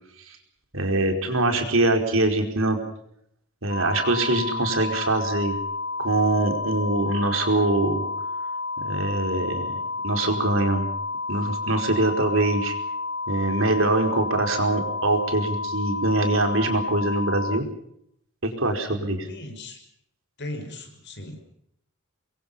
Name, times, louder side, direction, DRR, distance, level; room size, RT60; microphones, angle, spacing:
voice 1, 0.7-2.8 3.6-5.5 6.0-8.0 8.8-9.7 10.0-10.9 11.3-12.8 13.3-17.6 18.4-19.3, right 2 dB, 65° right, 5 dB, 4.8 m, -23 dB
sound 1, 3.7-17.6, left 3 dB, 75° left, 3.9 m, -31 dB
voice 2, 19.2-19.8 20.4-21.4, left 1 dB, 55° left, 5 dB, 6.1 m, -37 dB
27.5 x 23.5 x 5.7 m, 0.72 s
head